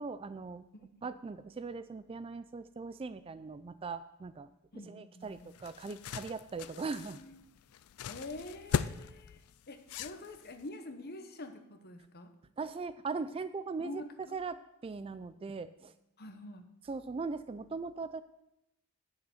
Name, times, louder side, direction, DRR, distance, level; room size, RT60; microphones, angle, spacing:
voice 1, 0.0-0.7 1.0-4.5 4.9-7.2 12.6-14.0 14.3-15.9 16.9-18.2, right 4 dB, 25° right, 13 dB, 0.3 m, -40 dB
voice 2, 4.7-5.5 7.0-7.3 8.1-12.3 13.8-14.4 16.2-16.6, left 2 dB, 45° left, 7 dB, 1.0 m, -46 dB
sound 1, 5.2-10.7, left 7 dB, 80° left, 0.4 m, -39 dB
7.9 x 6.8 x 7.7 m, 0.85 s
head